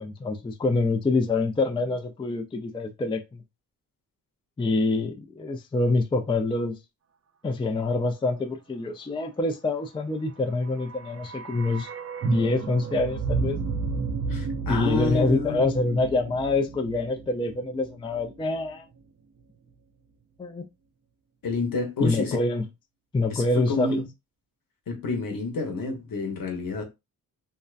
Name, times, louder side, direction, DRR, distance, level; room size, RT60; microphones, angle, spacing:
voice 1, 0.0-3.4 4.6-6.8 7.4-11.9 12.2-13.6 14.7-18.9 20.4-20.6 22.0-22.7 23.1-24.0, left 2 dB, 15° left, 0.4 m, -26 dB
sound 1, 10.5-18.7 18.9-19.0, right 5 dB, 45° right, 0.5 m, -33 dB
voice 2, 14.3-15.7 21.4-22.4 23.3-24.1 24.9-26.8, left 3 dB, 65° left, 0.9 m, -29 dB
2.6 x 2.1 x 2.4 m
cardioid pair, 65°, 37 cm